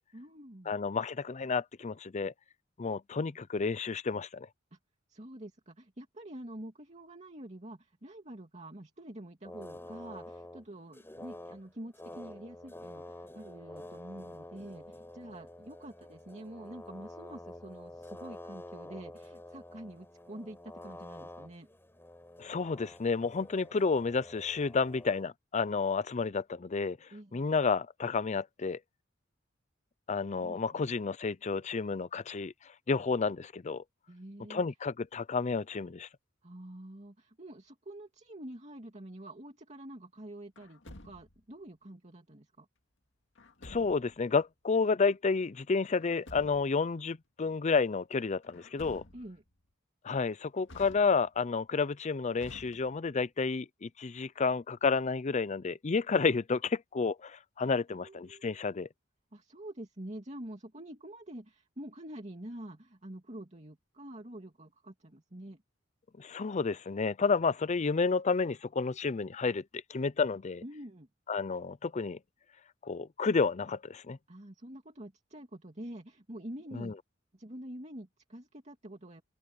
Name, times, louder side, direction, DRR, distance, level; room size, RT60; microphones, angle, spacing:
voice 1, 0.1-0.7 4.7-4.8 5.1-21.7 27.1-27.5 30.4-30.9 34.1-34.6 36.4-42.7 49.1-49.4 57.9-58.9 59.3-65.6 70.6-71.1 74.3-77.0 77.3-79.2, right 1 dB, 35° right, 2.6 m, -47 dB
voice 2, 0.7-2.3 2.8-4.5 22.4-27.0 27.3-28.8 30.1-32.5 32.9-33.8 34.5-36.1 43.6-49.0 50.0-58.9 66.2-70.6 71.3-72.2 72.8-74.2 76.7-76.9, left 4 dB, 35° left, 0.5 m, -30 dB
sound 1, 9.4-25.2, left 1 dB, 10° left, 4.7 m, -48 dB
Truck, 40.6-41.5 43.4-44.2 45.9-46.8 48.4-49.5 50.7-51.5 52.4-53.3, left 1 dB, 65° left, 2.1 m, -51 dB
open air
head